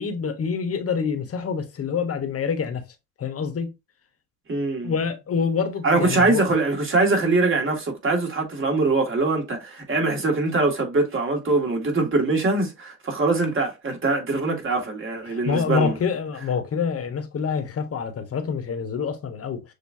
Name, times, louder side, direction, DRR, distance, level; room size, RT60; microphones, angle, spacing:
voice 1, 0.0-2.8 3.2-3.7 4.8-6.4 15.3-19.6, left 6 dB, 40° left, 1.2 m, -26 dB
voice 2, 4.5-4.9 5.8-15.9, right 3 dB, 35° right, 2.1 m, -23 dB
6.6 x 2.5 x 2.7 m
supercardioid pair, 75°, 35 cm